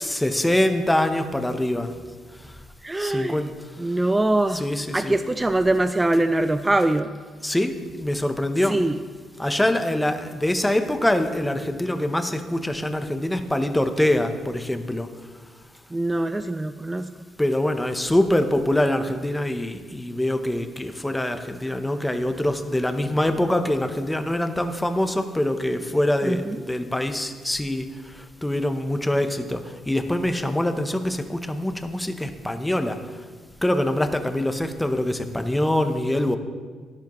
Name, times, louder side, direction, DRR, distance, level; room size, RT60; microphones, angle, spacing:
voice 1, 0.0-1.9 3.0-3.5 4.5-5.2 7.4-8.8 9.4-15.1 17.4-27.9 28.2-33.0 33.6-36.4, left 1 dB, 10° left, 7 dB, 0.8 m, -24 dB
voice 2, 2.8-3.4 3.8-4.6 4.9-7.2 8.7-9.0 15.9-17.1 26.2-26.6, right 2 dB, 15° right, 9 dB, 0.3 m, -23 dB
12.0 x 11.0 x 3.1 m, 1.5 s
cardioid pair, 90°, 0 cm